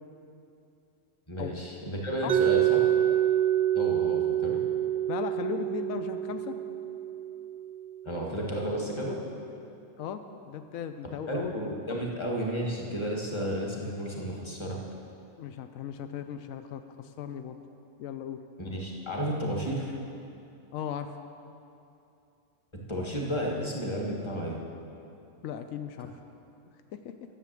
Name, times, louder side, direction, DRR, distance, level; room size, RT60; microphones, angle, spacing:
voice 1, 1.3-2.8 3.7-4.6 8.0-9.2 11.0-14.8 18.6-19.9 22.7-24.6, equal, 20° left, -2 dB, 1.5 m, -32 dB
Mallet percussion, 2.3-8.1, right 12 dB, 65° right, 0.7 m, -27 dB
voice 2, 5.1-6.5 10.0-11.5 11.9-12.1 15.4-17.6 18.0-18.4 20.7-21.2 25.4-26.1 27.0-27.1, left 8 dB, 85° left, 8 dB, 1.0 m, -37 dB
11.0 x 6.8 x 7.6 m, 2.7 s
omnidirectional pair, 1.4 m